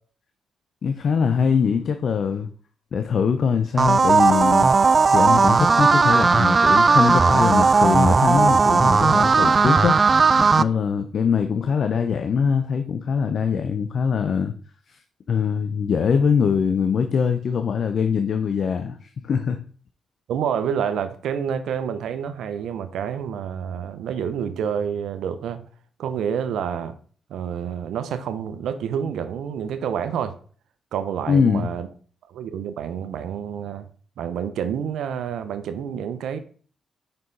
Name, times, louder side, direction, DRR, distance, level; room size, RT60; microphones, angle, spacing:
voice 1, 0.8-2.5 2.9-4.7 5.1-14.5 14.9-15.0 15.3-19.6 31.3-31.7, left 6 dB, 60° left, 0.6 m, -22 dB
sound 1, 3.8-10.6, right 4 dB, 40° right, 0.3 m, -16 dB
voice 2, 20.3-25.6 26.0-26.9 27.3-30.4 30.9-31.9 32.3-33.9 34.2-36.4, right 8 dB, 80° right, 0.7 m, -28 dB
5.6 x 5.3 x 4.0 m
supercardioid pair, 60°, 0 cm